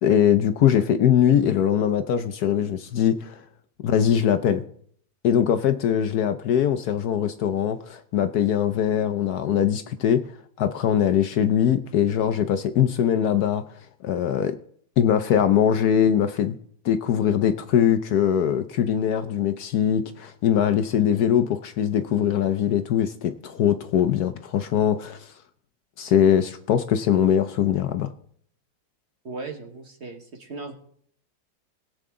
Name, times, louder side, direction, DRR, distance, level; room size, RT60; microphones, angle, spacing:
voice 1, 0.0-3.4 3.8-4.6 5.2-10.2 10.6-13.6 14.0-14.5 15.0-16.6 16.8-25.3 26.0-28.1, left 9 dB, 65° left, 9 dB, 1.1 m, -21 dB
voice 2, 29.2-30.7, right 3 dB, 40° right, 4 dB, 1.4 m, -37 dB
21.0 x 7.9 x 3.7 m, 0.62 s
omnidirectional pair, 2.0 m